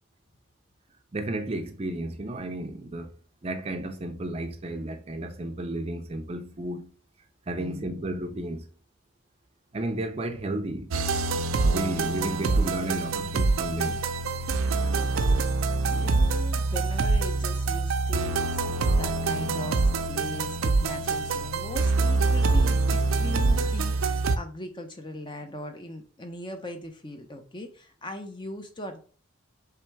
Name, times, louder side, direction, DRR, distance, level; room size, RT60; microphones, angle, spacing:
voice 1, 1.1-3.1 3.4-6.9 7.5-8.7 9.7-10.9 11.6-14.1, right 1 dB, 30° right, 0.5 m, -33 dB
voice 2, 7.6-8.0 12.2-12.3 14.7-15.1 15.8-29.0, left 1 dB, 25° left, 0.5 m, -40 dB
sound 1, 10.9-24.4, right 3 dB, 80° right, 0.5 m, -25 dB
3.4 x 3.3 x 4.5 m
head